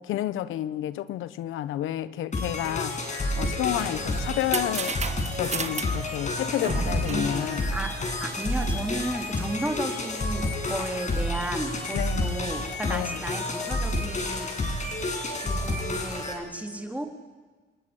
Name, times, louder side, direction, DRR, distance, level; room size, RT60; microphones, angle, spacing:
voice 1, 0.0-3.0 3.4-5.0 5.4-7.7 11.9-12.3 12.9-13.2, left 13 dB, 90° left, 1.1 m, -30 dB
sound 1, 2.3-16.3, left 1 dB, 35° left, 6.8 m, -30 dB
sound 2, 3.5-8.5, right 5 dB, 35° right, 1.9 m, -35 dB
voice 2, 7.1-7.9 8.2-14.5 15.4-17.1, right 1 dB, 5° right, 3.8 m, -34 dB
29.5 x 19.0 x 10.0 m
cardioid pair, 90°, 20 cm